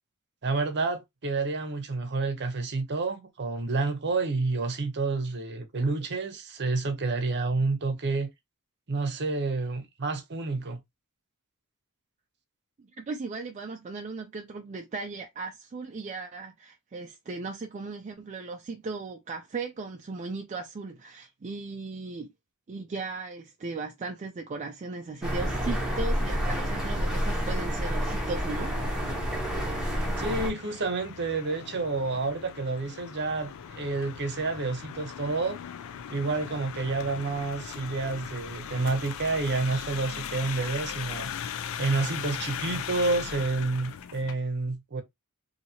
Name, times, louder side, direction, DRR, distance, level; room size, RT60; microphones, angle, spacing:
voice 1, 0.4-8.3 8.9-10.8 30.2-35.6 36.1-41.3 41.8-45.0, right 3 dB, 50° right, 0.7 m, -29 dB
voice 2, 12.8-22.3 22.7-28.8, right 3 dB, 35° right, 0.4 m, -37 dB
sound 1, 25.2-30.5, equal, 5° right, 0.8 m, -29 dB
sound 2, 28.7-44.3, left 8 dB, 65° left, 0.4 m, -39 dB
2.8 x 2.7 x 2.7 m
head